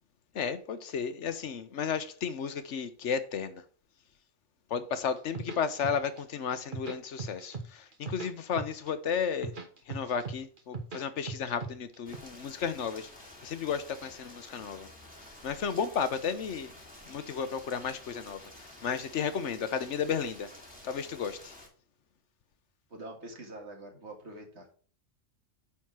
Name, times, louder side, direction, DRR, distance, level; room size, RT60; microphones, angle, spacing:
voice 1, 0.3-3.6 4.7-9.5 9.9-14.9 15.2-16.7 17.1-20.5 20.8-21.5, left 7 dB, 65° left, 1.2 m, -33 dB
sound 1, 5.2-6.2 6.5-7.7 7.9-8.9 9.2-11.0 11.3-12.2, right 4 dB, 40° right, 1.3 m, -38 dB
Rain, 12.0-21.7, left 1 dB, 5° right, 2.3 m, -51 dB
voice 2, 22.9-24.7, right 1 dB, 60° right, 2.2 m, -45 dB
9.4 x 4.3 x 5.9 m
omnidirectional pair, 1.3 m